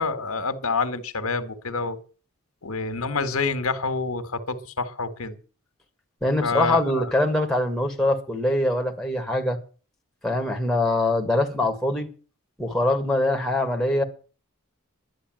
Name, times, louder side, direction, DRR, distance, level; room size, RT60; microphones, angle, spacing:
voice 1, 0.0-2.0 2.6-5.4 6.4-7.1, left 4 dB, 80° left, 1.7 m, -27 dB
voice 2, 6.2-9.6 10.2-12.1 12.6-14.0, left 1 dB, ahead, 1.9 m, -23 dB
11.5 x 10.0 x 7.7 m
head